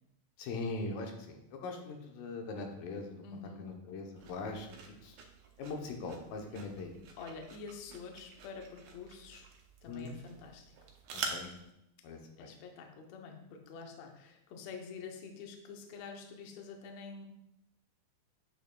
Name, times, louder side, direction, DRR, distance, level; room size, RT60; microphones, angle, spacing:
voice 1, 0.4-3.2 3.6-5.2 5.6-6.9 9.9-10.2 11.3-11.5 12.0-12.5, left 3 dB, 85° left, 2 dB, 2.6 m, -41 dB
voice 2, 3.2-3.7 7.2-9.5 9.8-10.8 12.4-17.3, left 5 dB, 70° left, 3 dB, 1.8 m, -47 dB
sound 1, 4.1-11.7, right 4 dB, 75° right, 1.9 m, -47 dB
8.0 x 6.8 x 2.3 m, 0.83 s
omnidirectional pair, 3.9 m